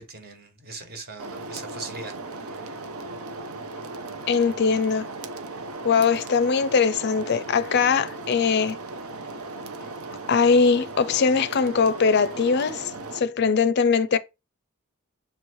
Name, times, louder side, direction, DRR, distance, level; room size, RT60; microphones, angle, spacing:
voice 1, 0.0-2.8, right 3 dB, 45° right, 1.4 m, -41 dB
sound 1, 1.2-13.2, right 2 dB, 85° right, 0.8 m, -37 dB
voice 2, 4.3-5.1 5.8-8.8 10.3-14.2, left 5 dB, 50° left, 0.4 m, -21 dB
7.3 x 3.0 x 4.7 m
head